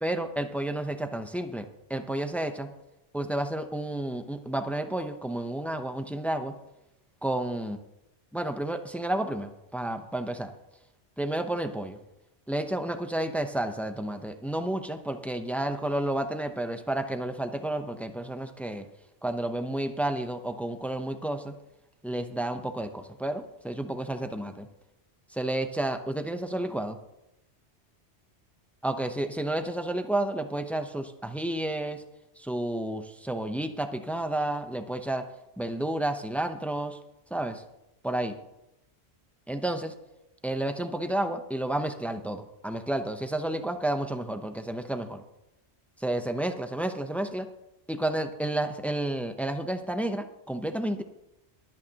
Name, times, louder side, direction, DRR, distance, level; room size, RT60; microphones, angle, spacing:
voice 1, 0.0-2.7 3.1-6.5 7.2-7.8 8.3-10.5 11.2-12.0 12.5-18.9 19.2-21.5 22.0-24.7 25.3-27.0 28.8-32.0 32.4-35.3 35.6-37.0 37.3-37.6 38.0-38.4 39.5-39.9 40.4-45.2 46.0-47.5 47.9-51.0, right 1 dB, ahead, 7 dB, 0.6 m, -31 dB
24.0 x 8.8 x 2.9 m, 0.88 s
omnidirectional pair, 1.2 m